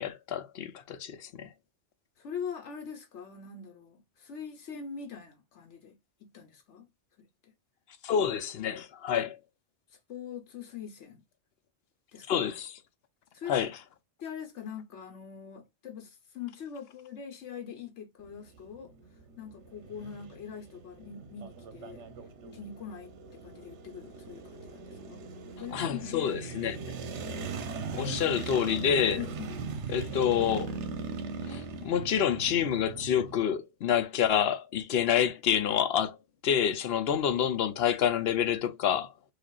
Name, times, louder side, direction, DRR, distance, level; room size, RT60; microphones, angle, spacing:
voice 1, 0.0-1.5 8.0-9.4 12.3-12.8 13.5-13.7 25.7-27.0 27.9-29.3 29.9-30.7 31.4-36.2 36.4-39.2, left 8 dB, 65° left, 0.8 m, -28 dB
voice 2, 2.2-6.9 7.2-7.5 9.9-11.2 12.1-12.4 13.3-13.6 14.2-18.9 19.4-22.0 22.5-25.2 25.6-26.4 28.0-28.4 29.2-30.0, left 7 dB, 85° left, 1.2 m, -43 dB
sound 1, 18.2-33.4, right 5 dB, 80° right, 1.0 m, -40 dB
4.8 x 2.4 x 2.3 m
omnidirectional pair, 1.2 m